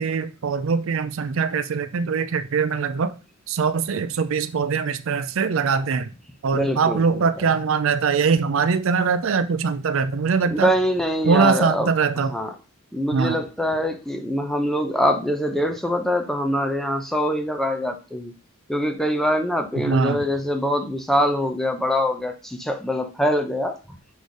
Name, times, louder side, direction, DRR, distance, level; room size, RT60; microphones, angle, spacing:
voice 1, 0.0-3.2 3.5-6.1 6.4-10.7 11.3-12.3 13.1-13.4 19.8-20.3, right 5 dB, 60° right, 13 dB, 0.4 m, -22 dB
voice 2, 6.5-7.5 10.5-11.9 12.3-12.5 12.9-18.3 18.7-23.8, equal, ahead, 4 dB, 0.7 m, -24 dB
6.2 x 3.3 x 5.1 m, 0.33 s
head